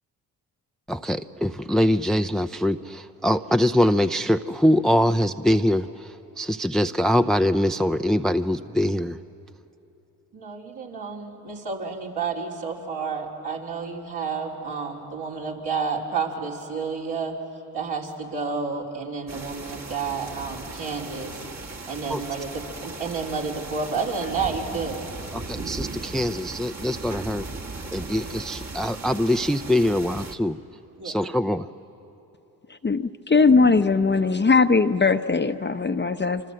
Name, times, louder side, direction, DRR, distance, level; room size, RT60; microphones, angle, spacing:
voice 1, 0.9-9.2 22.1-22.2 25.3-27.5 27.9-30.6 31.0-31.7, equal, ahead, 11 dB, 0.6 m, -23 dB
voice 2, 10.3-17.4 17.7-21.4 21.9-25.0 31.0-31.2, right 5 dB, 60° right, -2 dB, 4.0 m, -30 dB
sound 1, 19.3-30.4, right 3 dB, 35° right, 1.9 m, -37 dB
voice 3, 32.7-36.4, left 4 dB, 25° left, 9 dB, 0.9 m, -20 dB
26.0 x 25.5 x 7.7 m, 2.9 s
supercardioid pair, 50°, 43 cm